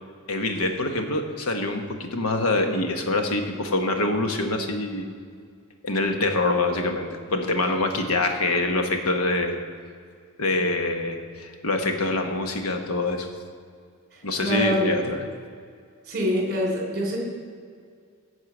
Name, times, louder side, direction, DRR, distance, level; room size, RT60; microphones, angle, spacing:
voice 1, 0.3-5.1 5.8-9.6 10.4-13.3 14.2-15.2, left 2 dB, 70° left, 5 dB, 1.1 m, -25 dB
voice 2, 14.1-14.9 16.1-17.2, equal, 45° right, -1 dB, 3.0 m, -25 dB
11.0 x 4.8 x 7.8 m, 2.2 s
head